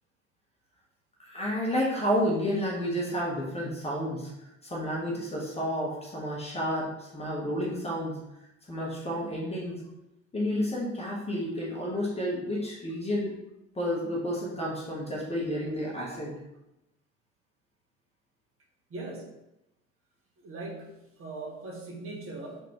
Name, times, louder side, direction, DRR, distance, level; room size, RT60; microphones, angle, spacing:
voice 1, 1.2-4.3 4.6-8.2 8.7-9.8 10.3-13.3 13.7-16.4, equal, 15° left, -4 dB, 0.9 m, -31 dB
voice 2, 18.9-19.3 20.4-22.6, right 2 dB, 35° right, -1 dB, 1.0 m, -40 dB
3.8 x 2.5 x 2.9 m, 0.91 s
figure-of-eight pair, 50°, 38 cm